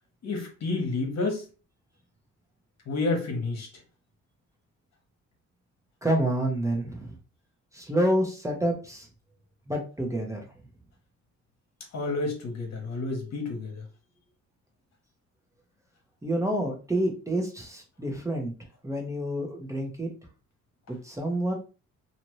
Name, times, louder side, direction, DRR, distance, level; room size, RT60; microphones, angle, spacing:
voice 1, 0.2-1.4 2.9-3.7 11.9-13.8, left 3 dB, 60° left, 1.2 m, -30 dB
voice 2, 6.0-7.1 7.7-9.1 9.7-10.4 16.2-18.5 18.8-20.1 20.9-21.5, right 1 dB, 10° right, 0.9 m, -28 dB
2.7 x 2.5 x 3.0 m
cardioid pair, 90°, 30 cm